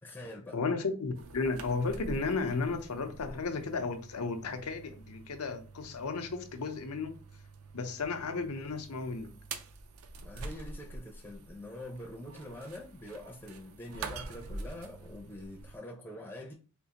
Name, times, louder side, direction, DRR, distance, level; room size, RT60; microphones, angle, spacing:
voice 1, 0.0-0.6 10.2-16.5, left 1 dB, 10° left, 0.5 m, -45 dB
voice 2, 0.5-7.2 7.7-9.3, left 4 dB, 85° left, 0.6 m, -34 dB
sound 1, 1.2-15.8, right 3 dB, 70° right, 0.4 m, -46 dB
3.7 x 2.4 x 2.8 m
head